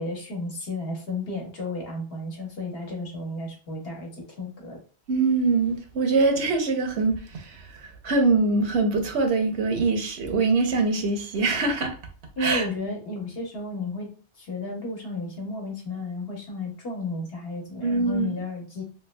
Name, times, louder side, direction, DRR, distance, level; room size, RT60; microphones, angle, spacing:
voice 1, 0.0-4.8 12.4-18.8, left 2 dB, 60° left, 1.2 m, -33 dB
voice 2, 5.1-11.9 12.4-12.6 17.8-18.3, right 3 dB, 70° right, 0.9 m, -23 dB
3.1 x 3.0 x 2.2 m
omnidirectional pair, 1.2 m